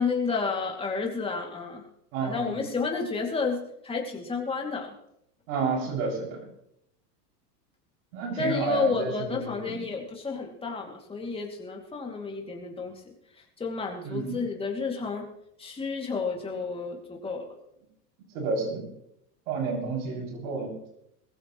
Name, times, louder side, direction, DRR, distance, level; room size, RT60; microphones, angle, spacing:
voice 1, 0.0-1.8 2.2-3.6 3.8-4.9 8.4-13.0 13.6-15.3 15.6-17.5, left 4 dB, 10° left, 0 dB, 2.5 m, -31 dB
voice 2, 2.1-2.7 5.5-6.4 8.1-9.8 14.0-14.4 18.3-18.9 19.5-20.7, right 4 dB, 55° right, -1 dB, 7.0 m, -30 dB
21.5 x 15.0 x 3.1 m, 0.77 s
supercardioid pair, 145°, 49 cm